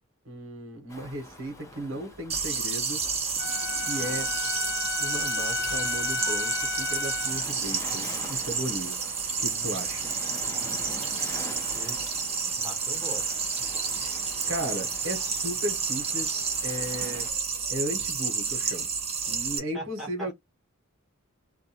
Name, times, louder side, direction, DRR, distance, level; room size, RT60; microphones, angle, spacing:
voice 1, 0.2-3.0 3.8-4.4 5.0-9.0 9.4-10.1 14.0-17.3 17.7-18.9 19.3-20.3, right 1 dB, 75° right, 1.0 m, -36 dB
Waves surf, 0.9-17.3, left 1 dB, 15° left, 0.7 m, -45 dB
sound 1, 2.3-19.6, right 5 dB, 30° right, 0.8 m, -30 dB
Wind instrument woodwind instrument, 3.4-7.5, left 5 dB, 55° left, 0.5 m, -33 dB
voice 2, 11.2-12.0 12.5-13.5 19.7-20.3, right 1 dB, ahead, 1.2 m, -41 dB
2.6 x 2.2 x 2.8 m
head